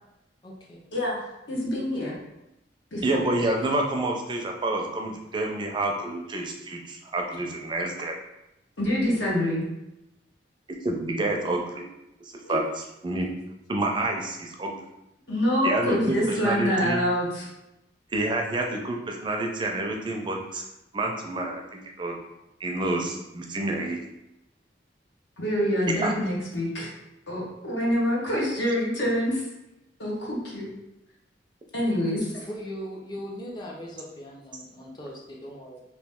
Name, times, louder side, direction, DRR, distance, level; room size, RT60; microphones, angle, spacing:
voice 1, 0.4-0.8 32.5-35.8, equal, 25° left, -2 dB, 0.5 m, -39 dB
voice 2, 1.5-2.2 2.9-3.3 8.8-9.7 12.4-12.6 15.3-17.5 25.4-26.9 27.3-29.4 30.0-30.7 31.7-32.5, equal, 75° left, -4 dB, 1.1 m, -26 dB
voice 3, 3.0-8.1 10.8-11.8 12.5-12.6 13.0-13.3 13.7-14.8 15.6-16.2 16.4-17.0 18.1-20.7 20.9-22.2 22.6-24.0 26.0-26.1, right 2 dB, 25° right, 1 dB, 0.4 m, -28 dB
3.0 x 2.6 x 3.5 m, 0.91 s
head